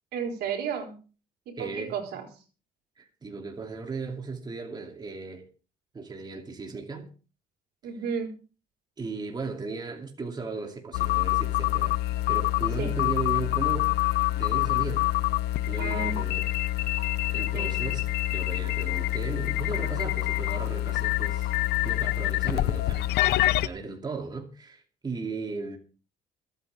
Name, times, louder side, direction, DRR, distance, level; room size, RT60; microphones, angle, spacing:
voice 1, 0.1-1.0 1.5-2.3 7.8-8.4 12.8-13.0 15.8-16.4 17.5-17.7, right 6 dB, 75° right, 4.0 m, -33 dB
voice 2, 1.6-2.0 3.0-5.5 5.9-7.1 9.0-12.0 12.3-13.9 14.4-15.1 15.7-16.5 16.9-21.5 21.8-23.1 23.6-25.8, right 4 dB, 25° right, 2.6 m, -36 dB
sound 1, 10.9-23.7, left 16 dB, 75° left, 0.8 m, -26 dB
26.5 x 9.0 x 3.4 m
cardioid pair, 110°, 17 cm